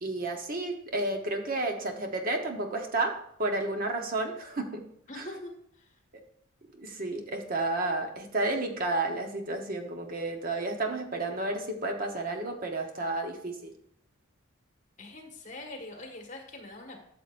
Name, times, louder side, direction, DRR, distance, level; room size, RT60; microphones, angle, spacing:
voice 1, 0.0-4.8 5.1-5.3 6.7-13.7, right 2 dB, 40° right, 4 dB, 1.0 m, -31 dB
voice 2, 5.1-6.0 15.0-17.0, left 2 dB, 35° left, 2 dB, 1.6 m, -43 dB
12.5 x 6.8 x 2.6 m, 0.70 s
head